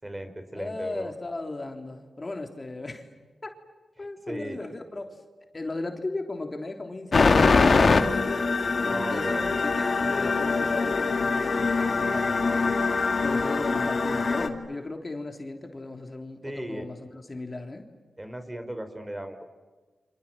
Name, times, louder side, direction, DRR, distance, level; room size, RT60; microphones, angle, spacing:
voice 1, 0.0-1.1 4.3-4.6 8.9-9.6 16.4-16.9 18.2-19.4, right 1 dB, 20° right, 8 dB, 5.2 m, -36 dB
voice 2, 0.5-3.1 3.4-3.6 4.0-5.2 5.5-8.1 8.8-17.9, left 2 dB, 40° left, 4 dB, 3.5 m, -36 dB
sound 1, 7.1-14.5, left 4 dB, 60° left, 2.5 m, -23 dB
30.0 x 26.0 x 7.6 m, 1.3 s
supercardioid pair, 40°, 0 cm